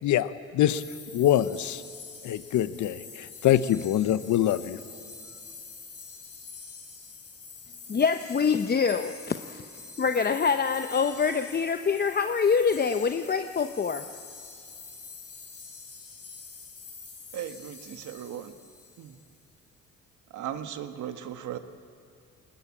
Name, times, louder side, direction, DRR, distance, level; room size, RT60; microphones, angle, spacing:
voice 1, 0.0-0.8 1.1-1.8 2.2-4.8, left 11 dB, 65° left, 14 dB, 0.9 m, -24 dB
sound 1, 0.7-19.4, left 4 dB, 50° left, 6.7 m, -46 dB
voice 2, 7.9-9.7 10.0-14.1, left 5 dB, 30° left, 8 dB, 0.8 m, -25 dB
voice 3, 17.3-18.5 19.0-19.2 20.3-21.6, right 10 dB, 65° right, 8 dB, 1.5 m, -37 dB
21.5 x 19.5 x 8.7 m, 2.5 s
supercardioid pair, 70°, 32 cm